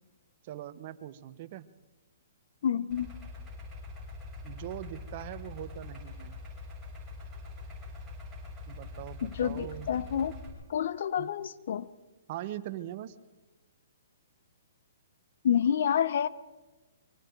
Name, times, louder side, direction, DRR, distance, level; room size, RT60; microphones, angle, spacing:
voice 1, 0.4-1.7 4.4-6.5 8.7-9.9 11.2-11.3 12.3-13.2, right 13 dB, 45° right, 1.1 m, -41 dB
voice 2, 2.6-3.1 9.2-10.3 10.7-11.9 15.4-16.3, left 8 dB, 60° left, 0.9 m, -28 dB
Idling, 2.9-10.5, left 3 dB, 10° right, 6.8 m, -44 dB
24.5 x 24.0 x 4.6 m
hypercardioid pair, 140°, 0 cm